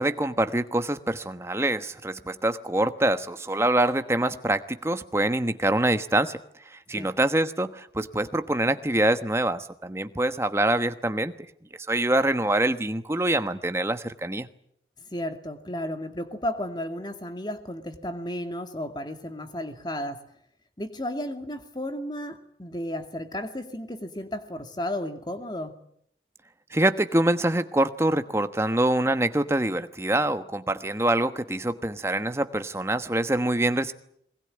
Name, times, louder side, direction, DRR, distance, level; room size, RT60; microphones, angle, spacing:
voice 1, 0.0-6.4 6.7-11.3 11.9-14.5 26.7-33.9, right 1 dB, 15° right, 10 dB, 1.2 m, -25 dB
voice 2, 15.0-20.2 20.8-25.8, left 1 dB, 25° left, 7 dB, 2.3 m, -33 dB
22.5 x 20.5 x 9.9 m, 0.69 s
head